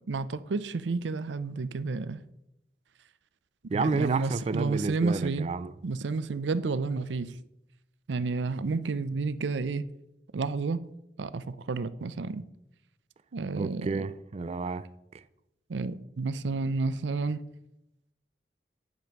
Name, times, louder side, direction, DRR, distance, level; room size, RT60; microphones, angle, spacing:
voice 1, 0.1-2.2 3.7-5.5 5.8-7.3 8.1-9.9 10.3-10.8 11.2-12.4 13.3-14.1 15.7-17.4, right 4 dB, 90° right, 0.5 m, -30 dB
voice 2, 3.7-5.7 13.5-14.9, right 4 dB, 35° right, 0.3 m, -30 dB
10.5 x 5.2 x 6.0 m
head